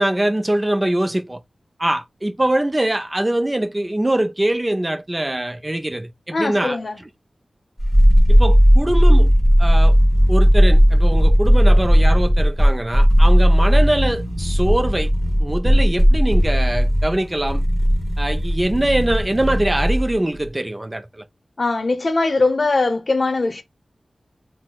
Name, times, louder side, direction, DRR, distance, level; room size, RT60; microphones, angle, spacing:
voice 1, 0.0-1.4 1.8-7.1 8.3-9.3 9.6-10.0 10.3-15.1 15.4-17.6 18.2-21.2, right 1 dB, 20° right, 0.4 m, -22 dB
voice 2, 6.3-7.0 21.6-23.6, left 3 dB, 50° left, 0.7 m, -20 dB
sound 1, 7.8-20.2 20.4-20.5, equal, 5° left, 1.2 m, -15 dB
5.8 x 2.0 x 2.2 m
wide cardioid pair, 100°, 0 cm